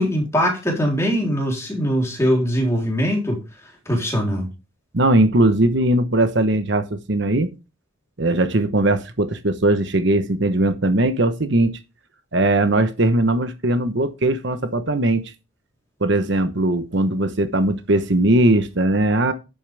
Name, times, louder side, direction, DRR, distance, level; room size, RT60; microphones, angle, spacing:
voice 1, 0.0-3.4 3.9-4.5, equal, 15° left, 3.7 m, -21 dB
voice 2, 4.9-7.5 8.2-11.7 12.3-15.2 16.0-19.3, right 1 dB, 60° right, 1.1 m, -19 dB
11.0 x 8.4 x 3.5 m
head